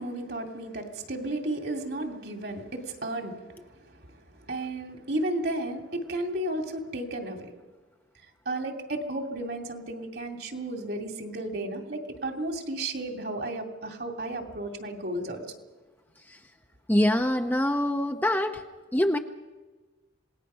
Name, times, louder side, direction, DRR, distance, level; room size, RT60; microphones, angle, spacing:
voice 1, 0.0-7.6 8.5-15.6, right 1 dB, 55° right, 4 dB, 2.4 m, -33 dB
voice 2, 16.9-18.6 18.9-19.2, left 1 dB, 10° left, 5 dB, 0.7 m, -24 dB
27.0 x 19.0 x 5.6 m, 1.3 s
head